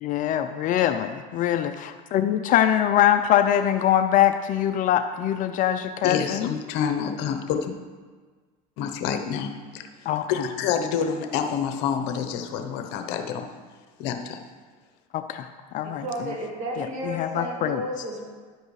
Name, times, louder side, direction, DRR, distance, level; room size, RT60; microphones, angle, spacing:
voice 1, 0.0-6.5 10.1-10.2 15.1-15.5 15.7-16.0 16.8-17.8, left 11 dB, 45° left, 8 dB, 0.5 m, -23 dB
voice 2, 6.0-7.7 8.8-9.9 10.3-13.5 14.0-14.4, left 7 dB, 60° left, 5 dB, 0.9 m, -28 dB
voice 3, 15.8-18.2, right 1 dB, 35° right, -2 dB, 2.6 m, -32 dB
10.5 x 7.9 x 3.2 m, 1.5 s
supercardioid pair, 110°, 20 cm